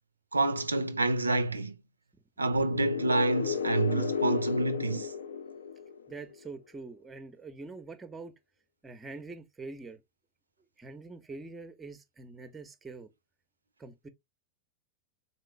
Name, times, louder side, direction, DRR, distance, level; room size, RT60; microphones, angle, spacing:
voice 1, 0.3-1.8 2.4-5.1, right 2 dB, 80° right, 0.3 m, -28 dB
sound 1, 2.6-6.3, left 6 dB, 70° left, 0.4 m, -33 dB
voice 2, 6.1-8.3 8.8-10.0 10.8-13.1 13.8-14.1, right 3 dB, 15° right, 0.6 m, -44 dB
3.8 x 3.0 x 3.2 m
figure-of-eight pair, 90°, 0 cm